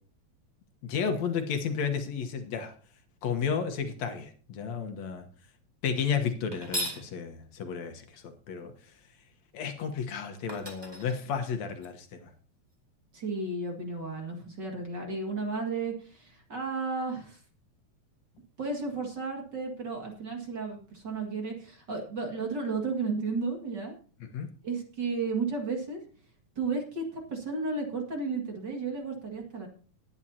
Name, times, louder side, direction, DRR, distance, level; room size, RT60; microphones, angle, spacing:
voice 1, 0.8-2.7 3.2-5.3 5.8-8.0 8.5-8.7 9.5-12.3 24.2-24.5, left 6 dB, 70° left, 6 dB, 2.4 m, -32 dB
sound 1, 6.5-7.1 10.0-10.1 10.5-11.9, right 1 dB, 10° right, 1.7 m, -37 dB
voice 2, 13.1-17.4 18.6-24.0 24.6-26.0 26.6-29.7, right 4 dB, 40° right, 1 dB, 2.5 m, -33 dB
19.5 x 9.9 x 2.8 m, 0.40 s
omnidirectional pair, 3.4 m